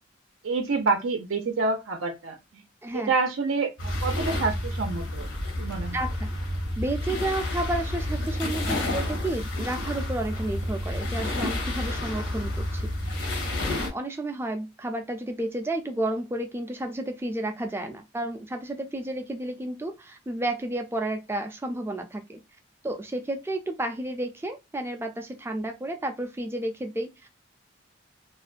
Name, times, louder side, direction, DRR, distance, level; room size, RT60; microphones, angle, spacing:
voice 1, 0.4-2.6 2.9-5.3 5.6-6.0, right 3 dB, 80° right, 0.5 m, -27 dB
voice 2, 2.8-3.1 5.9-6.3 6.8-12.9 13.6-22.4 22.8-27.3, right 1 dB, 10° right, 0.3 m, -31 dB
sound 1, 3.8-13.9, left 1 dB, 75° left, 0.9 m, -30 dB
2.5 x 2.1 x 2.4 m
head